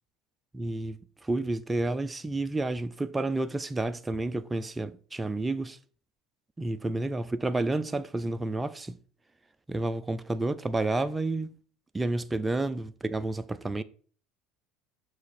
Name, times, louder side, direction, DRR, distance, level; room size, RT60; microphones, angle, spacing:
voice 1, 0.5-5.8 6.6-9.0 9.7-11.6 11.9-13.8, right 2 dB, 15° right, 0.4 m, -30 dB
6.2 x 4.8 x 4.2 m
supercardioid pair, 105°, 0 cm